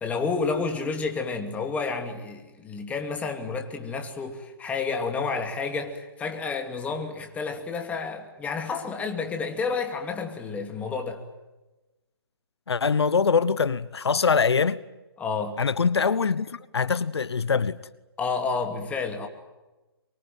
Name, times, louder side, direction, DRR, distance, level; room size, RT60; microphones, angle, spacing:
voice 1, 0.0-11.2 15.2-15.6 18.2-19.3, left 4 dB, 10° left, 2.6 m, -30 dB
voice 2, 12.7-14.8 15.6-17.8, left 5 dB, 80° left, 1.1 m, -23 dB
24.5 x 23.5 x 9.3 m
hypercardioid pair, 145°, 13 cm